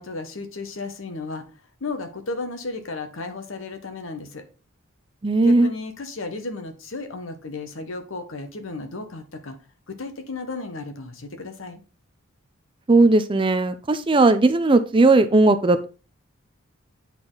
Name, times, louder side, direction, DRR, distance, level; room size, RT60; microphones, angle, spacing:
voice 1, 0.0-1.4 1.8-4.4 5.4-9.6 9.9-11.8, left 3 dB, 70° left, 7 dB, 1.2 m, -34 dB
voice 2, 5.2-5.7 12.9-15.9, right 2 dB, 25° right, 11 dB, 0.4 m, -17 dB
8.6 x 4.1 x 3.9 m, 0.34 s
head